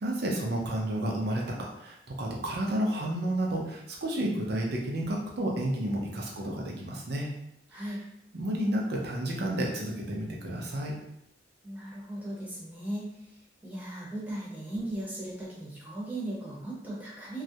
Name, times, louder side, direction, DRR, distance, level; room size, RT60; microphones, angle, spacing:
voice 1, 0.0-7.3 7.7-7.8 8.3-10.9, right 1 dB, 60° right, -1 dB, 0.5 m, -31 dB
voice 2, 11.6-13.1 13.6-17.4, right 1 dB, 10° right, -5 dB, 0.7 m, -37 dB
2.3 x 2.0 x 2.7 m, 0.81 s
head